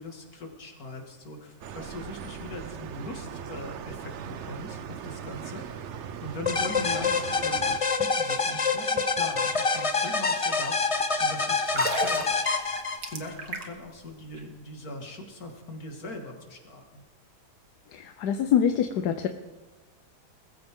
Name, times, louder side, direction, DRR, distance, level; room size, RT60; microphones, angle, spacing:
voice 1, 0.0-12.3 13.1-17.0, left 2 dB, 65° left, 3 dB, 2.6 m, -41 dB
sound 1, 1.6-7.8, right 7 dB, 55° right, 0.9 m, -39 dB
sound 2, 6.5-13.3, left 4 dB, 30° left, 0.6 m, -26 dB
sound 3, 11.6-13.9 14.2-14.4, right 3 dB, 70° right, 2.0 m, -34 dB
voice 2, 17.9-19.3, left 8 dB, 85° left, 7 dB, 1.3 m, -25 dB
21.0 x 14.0 x 3.7 m, 1.3 s
omnidirectional pair, 1.7 m